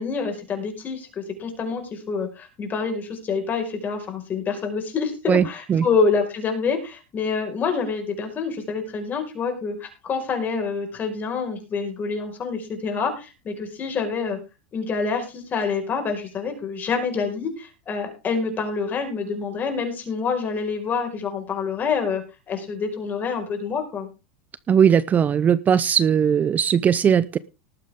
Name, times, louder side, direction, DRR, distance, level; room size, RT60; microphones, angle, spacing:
voice 1, 0.0-14.4 14.7-24.1, left 5 dB, 30° left, 4 dB, 5.2 m, -27 dB
voice 2, 5.3-5.9 24.7-27.4, right 8 dB, 25° right, 18 dB, 0.6 m, -19 dB
19.0 x 8.8 x 3.7 m, 0.30 s
supercardioid pair, 120°, 6 cm